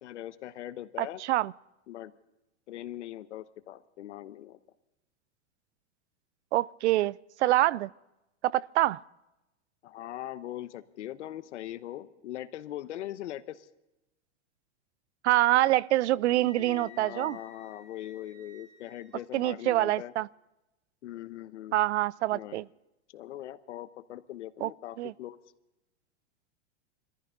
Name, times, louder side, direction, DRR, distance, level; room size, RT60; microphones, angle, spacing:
voice 1, 0.0-1.2 1.9-2.1 2.7-4.6 9.8-13.7 16.2-20.1 21.0-21.8 22.3-22.6 23.1-25.4, left 13 dB, 80° left, 1.1 m, -41 dB
voice 2, 1.0-1.5 6.5-7.9 8.4-9.0 15.2-17.4 19.3-20.3 21.7-22.6 24.6-24.7 25.0-25.1, right 15 dB, 75° right, 0.5 m, -26 dB
Wind instrument woodwind instrument, 16.4-19.2, left 3 dB, 10° right, 1.3 m, -53 dB
21.5 x 14.5 x 3.8 m
supercardioid pair, 175°, 35 cm